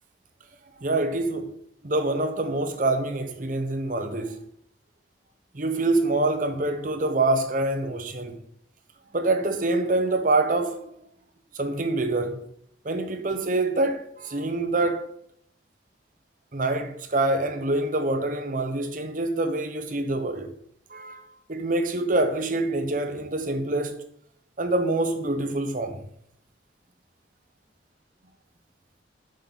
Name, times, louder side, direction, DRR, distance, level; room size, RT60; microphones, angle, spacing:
voice 1, 0.8-1.5 1.8-4.4 5.5-8.4 9.1-11.0 11.5-12.4 12.8-15.1 16.5-20.5 20.9-21.2 21.5-24.0 24.6-26.0, right 2 dB, 45° right, 0.9 m, -26 dB
7.8 x 6.5 x 4.1 m
head